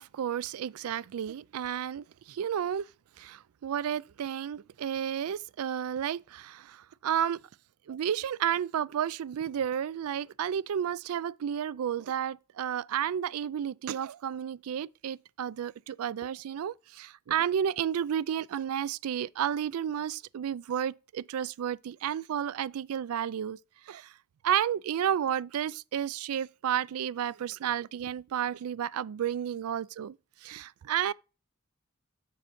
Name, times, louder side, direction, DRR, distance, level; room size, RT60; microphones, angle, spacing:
voice 1, 0.0-2.9 3.2-7.4 7.9-23.6 23.9-24.1 24.4-30.2 30.4-31.1, right 9 dB, 90° right, 0.4 m, -32 dB
7.0 x 5.7 x 4.3 m
head